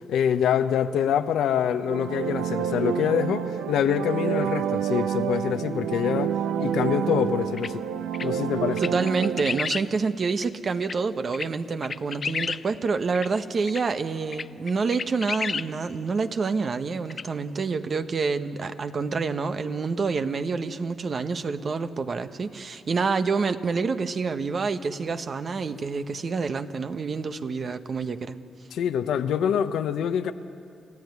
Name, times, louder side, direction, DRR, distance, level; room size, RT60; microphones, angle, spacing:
voice 1, 0.1-7.8 8.2-8.8 28.7-30.3, left 8 dB, 80° left, 9 dB, 1.0 m, -25 dB
sound 1, 1.7-9.6, right 9 dB, 90° right, 0.6 m, -28 dB
sound 2, 7.6-7.7 8.1-8.3 8.8-9.8 10.4-10.5 10.8-11.0 11.3-11.5 11.8-12.6 13.1-13.3 13.7-13.8 14.3-15.7 17.1-17.2, left 5 dB, 50° left, 0.6 m, -31 dB
voice 2, 8.8-28.4, right 4 dB, 50° right, 9 dB, 1.2 m, -27 dB
28.0 x 14.5 x 9.6 m, 2.4 s
cardioid pair, 70°, 0 cm